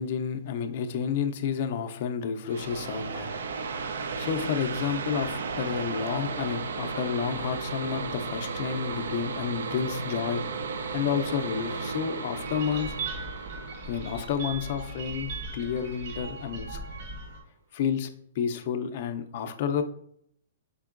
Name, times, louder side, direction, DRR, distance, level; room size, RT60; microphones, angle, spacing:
voice 1, 0.0-3.3 4.2-10.4 10.9-13.0 13.9-16.8 17.7-18.1 18.4-19.8, left 7 dB, 45° left, 6 dB, 0.4 m, -30 dB
sound 1, 2.5-15.9, right 4 dB, 85° right, 0.3 m, -35 dB
sound 2, 12.4-17.4, right 3 dB, 50° right, 1.1 m, -38 dB
5.1 x 3.6 x 2.4 m, 0.67 s
hypercardioid pair, 160°, 0 cm